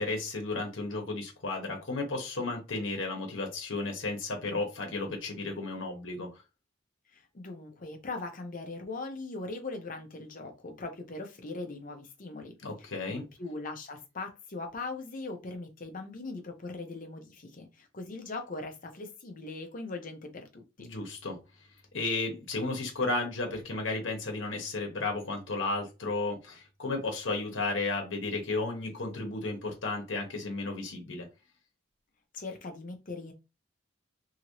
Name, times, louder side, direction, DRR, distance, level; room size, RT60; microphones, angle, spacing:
voice 1, 0.0-6.3 12.6-13.2 20.8-21.4 21.9-31.3, left 3 dB, 75° left, 1.0 m, -33 dB
voice 2, 7.1-12.5 12.8-20.9 32.3-33.3, left 3 dB, 45° left, 0.7 m, -40 dB
2.8 x 2.6 x 3.0 m
head